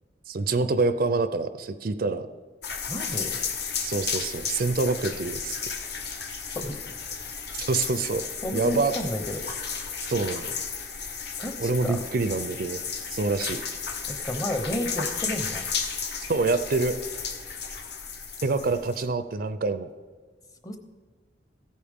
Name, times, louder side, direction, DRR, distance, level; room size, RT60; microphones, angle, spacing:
voice 1, 0.3-2.3 3.8-5.6 7.5-8.2 8.5-8.9 10.1-10.5 11.6-12.8 13.1-13.6 16.3-17.0 18.4-19.9, right 3 dB, 50° right, 11 dB, 0.5 m, -26 dB
sound 1, 2.6-19.1, left 6 dB, 60° left, 1.0 m, -33 dB
voice 2, 2.9-3.4 6.1-6.2 6.5-6.8 8.4-9.4 11.4-12.0 14.1-15.7 20.6-20.8, left 1 dB, 20° left, 7 dB, 0.9 m, -32 dB
15.0 x 8.6 x 3.6 m, 1.5 s
head